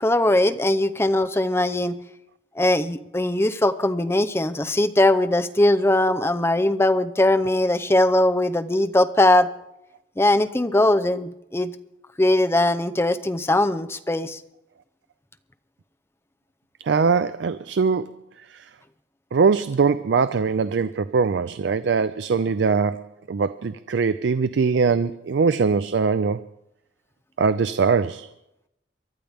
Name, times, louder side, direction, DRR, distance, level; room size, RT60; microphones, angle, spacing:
voice 1, 0.0-2.0 2.6-9.5 10.2-11.7 12.2-14.4, left 1 dB, 15° left, 0.6 m, -20 dB
voice 2, 16.8-18.2 18.5-18.6 19.3-26.5 27.4-28.3, right 5 dB, 85° right, 0.4 m, -22 dB
23.5 x 11.5 x 3.5 m
head